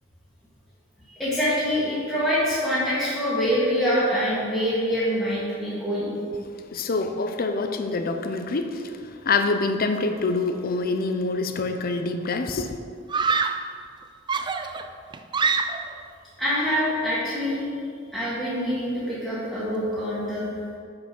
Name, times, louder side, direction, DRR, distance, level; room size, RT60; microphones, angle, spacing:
voice 1, 1.1-6.1 16.4-17.6 18.1-20.5, equal, ahead, -11 dB, 1.7 m, -25 dB
voice 2, 6.7-12.8, left 3 dB, 50° left, 7 dB, 0.6 m, -26 dB
Screaming, 11.6-12.0 13.1-13.7 14.3-16.0, right 4 dB, 25° right, 0.3 m, -26 dB
6.8 x 5.7 x 6.1 m, 2.3 s
head